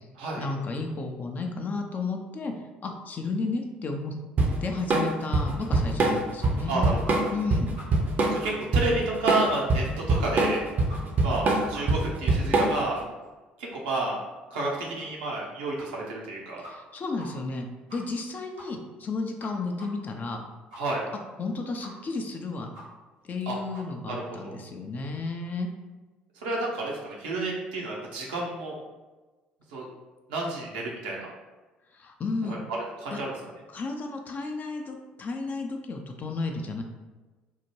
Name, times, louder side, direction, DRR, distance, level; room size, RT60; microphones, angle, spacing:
voice 1, 0.4-2.5 2.8-4.2 4.6-7.0 7.3-7.7 16.7-17.7 17.9-20.4 21.4-22.7 23.2-25.7 31.9-32.6 33.1-33.2 33.7-36.8, left 3 dB, 35° left, 3 dB, 0.5 m, -32 dB
Drum kit / Drum, 4.4-13.0, right 2 dB, 40° right, 0.6 m, -24 dB
sound 1, 5.2-5.8 6.1-6.2 6.4-7.1 7.4-7.5 7.8-8.1 8.4-8.5 8.8-8.9 9.3-9.4 9.7-9.8 10.1-10.5 10.9-11.0 11.3-11.4 11.7-11.8 12.2-12.3 12.7-12.8 13.2-13.3 13.7-13.8 14.2-14.3 14.7-14.8 15.3-15.4 15.8-15.9 16.2-16.3 16.6-16.9 17.2-17.3 17.5-17.6 17.9-18.2 18.5-18.7 19.0-19.1 19.4-19.5 19.8-19.9 20.2-20.3 20.7-20.8 21.2-21.3 21.8-21.9 22.2-22.3 22.7-22.8 23.2-23.3 23.7-23.8, equal, 85° right, 1.4 m, -45 dB
voice 2, 6.7-7.2 8.3-10.6 11.2-13.0 13.6-14.2 14.5-16.6 20.8-21.0 23.5-23.6 24.1-24.5 26.4-28.8 29.7-29.8 30.3-31.3 32.5-32.6 33.0-33.3, right 2 dB, 70° right, -3 dB, 0.7 m, -30 dB
3.6 x 2.1 x 3.1 m, 1.2 s
figure-of-eight pair, 55°, 5 cm